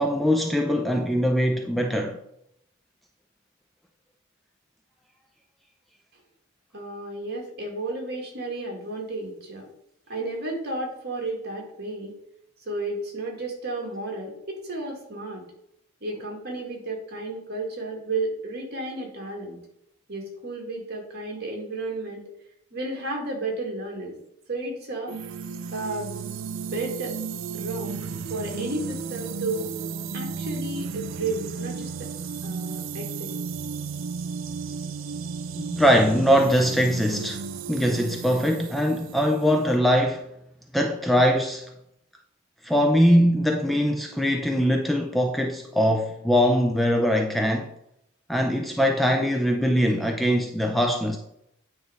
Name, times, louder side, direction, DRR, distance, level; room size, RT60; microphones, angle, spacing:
voice 1, 0.0-2.2 35.6-40.3 40.7-41.7 42.6-47.7 48.3-51.2, equal, ahead, 0.4 m, -22 dB
voice 2, 6.7-9.7 10.1-12.1 12.7-15.4 16.0-19.6 20.1-22.3 22.7-24.2 24.5-25.1 25.7-26.4 26.7-27.1 27.5-27.9 28.3-29.7 30.1-32.1 32.4-33.3, right 2 dB, 50° right, 1.9 m, -32 dB
sound 1, 25.1-39.8, right 5 dB, 65° right, 0.4 m, -34 dB
9.3 x 3.1 x 4.9 m
head